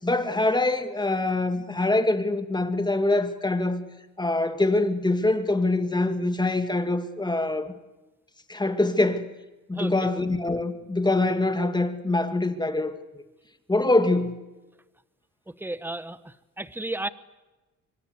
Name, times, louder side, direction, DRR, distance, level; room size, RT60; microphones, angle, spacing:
voice 1, 0.0-3.8 4.2-7.7 8.5-9.3 9.7-12.9 13.7-14.3, left 2 dB, 15° left, 2.3 m, -24 dB
voice 2, 15.6-17.1, right 2 dB, 5° right, 1.2 m, -33 dB
24.5 x 23.5 x 8.3 m
cardioid pair, 90°, 30 cm